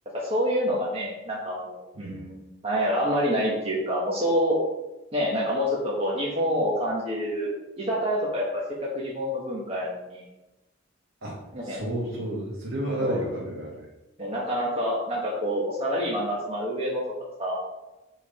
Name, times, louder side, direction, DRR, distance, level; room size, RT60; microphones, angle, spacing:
voice 1, 0.1-4.6 5.1-7.5 7.8-10.2 11.5-11.8 13.0-13.2 14.2-17.0 17.4-17.6, equal, 30° right, -5 dB, 1.4 m, -27 dB
voice 2, 11.2-13.8, right 1 dB, 80° right, -5 dB, 1.7 m, -32 dB
6.8 x 4.9 x 5.0 m, 1.0 s
head